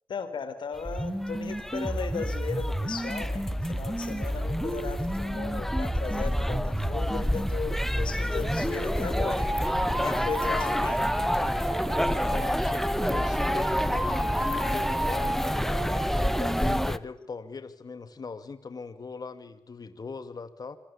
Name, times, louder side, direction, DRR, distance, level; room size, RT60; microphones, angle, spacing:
voice 1, 0.1-11.1 11.4-11.7 12.0-12.3 16.5-16.8, left 5 dB, 70° left, 11 dB, 4.0 m, -37 dB
sound 1, 0.8-17.0, equal, 5° left, 1.4 m, -30 dB
sound 2, 0.8-16.9, right 1 dB, 10° right, 5.6 m, -31 dB
voice 2, 10.2-10.8 12.1-14.1 14.6-15.6 16.1-20.8, left 4 dB, 50° left, 11 dB, 2.4 m, -40 dB
26.0 x 23.0 x 8.7 m, 0.71 s
supercardioid pair, 45°, 9 cm